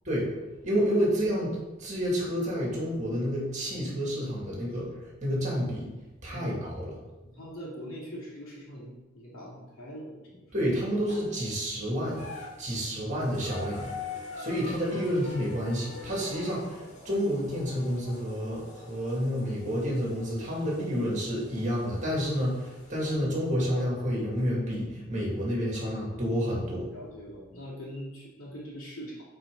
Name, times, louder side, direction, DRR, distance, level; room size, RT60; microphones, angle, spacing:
voice 1, 0.0-5.9 6.2-7.0 10.5-13.9 14.4-27.0, equal, 35° right, -4 dB, 2.4 m, -29 dB
voice 2, 6.3-6.7 7.2-10.4 12.8-13.0 26.9-29.2, equal, 90° left, -5 dB, 2.6 m, -42 dB
sound 1, 11.1-11.5 12.0-23.2 24.4-24.5 25.7-25.8, left 4 dB, 35° left, 1.9 m, -45 dB
9.0 x 4.4 x 3.9 m, 1.1 s
head